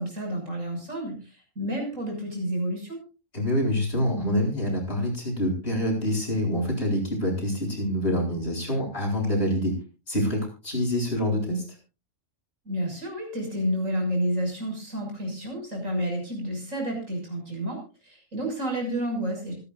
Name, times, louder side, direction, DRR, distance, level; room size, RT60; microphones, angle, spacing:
voice 1, 0.0-3.0 12.6-19.5, equal, 85° right, 2 dB, 7.0 m, -30 dB
voice 2, 3.3-9.7 10.1-11.6, equal, 55° left, -1 dB, 8.1 m, -26 dB
25.5 x 11.5 x 2.6 m, 0.32 s
omnidirectional pair, 1.3 m